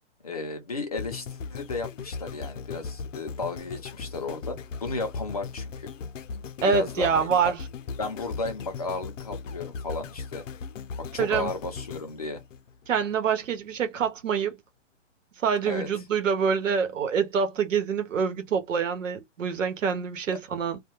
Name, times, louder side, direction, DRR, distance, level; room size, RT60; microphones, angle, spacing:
voice 1, 0.2-5.9 6.6-7.5 8.0-10.4 11.0-12.4 15.7-15.9 20.3-20.4, left 3 dB, 30° left, 0.5 m, -34 dB
sound 1, 1.0-13.2 13.7-13.8, left 5 dB, 80° left, 0.6 m, -38 dB
voice 2, 6.6-7.6 11.2-11.5 12.9-14.6 15.4-20.8, right 6 dB, 80° right, 1.0 m, -26 dB
2.2 x 2.2 x 3.0 m
hypercardioid pair, 180°, 38 cm